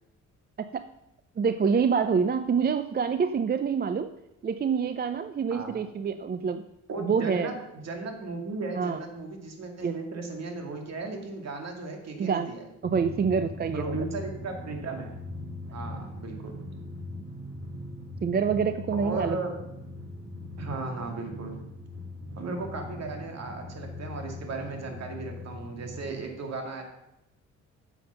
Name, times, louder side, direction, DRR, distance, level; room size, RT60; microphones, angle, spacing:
voice 1, 1.4-4.1 4.4-6.6 7.0-7.5 8.8-9.0 9.8-9.9 12.2-12.5 12.8-14.0 18.2-19.4, right 6 dB, 30° right, 10 dB, 0.5 m, -26 dB
voice 2, 6.9-12.7 13.7-15.2 15.7-16.6 19.0-19.5 20.6-21.6 22.4-26.8, right 3 dB, 60° right, 3 dB, 2.4 m, -36 dB
Drum, 12.8-26.3, left 1 dB, 80° right, 2.3 m, -40 dB
9.3 x 7.2 x 5.7 m, 0.88 s
cardioid pair, 90°, 30 cm